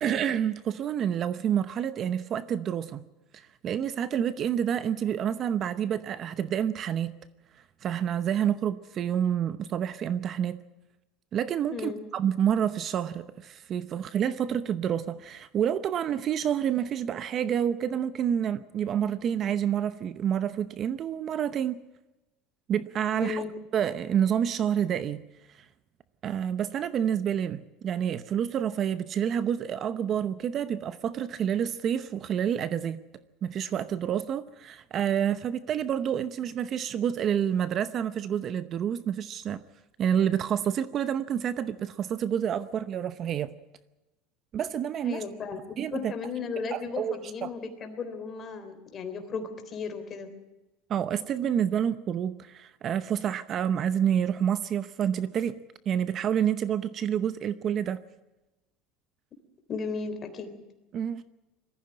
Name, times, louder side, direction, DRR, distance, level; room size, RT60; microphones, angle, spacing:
voice 1, 0.0-3.0 3.3-7.1 7.8-10.6 11.3-21.8 22.7-23.4 23.7-25.2 25.6-25.7 26.2-33.0 33.4-39.6 40.0-43.5 44.5-45.2 45.8-46.1 46.7-47.5 50.9-55.6 55.9-58.0 60.9-61.2, right 9 dB, 35° right, 14 dB, 0.8 m, -28 dB
voice 2, 11.7-12.0 23.1-23.5 45.0-50.3 59.7-60.5, left 5 dB, 30° left, 7 dB, 3.5 m, -35 dB
21.5 x 14.5 x 9.8 m, 1.0 s
supercardioid pair, 135°, 0 cm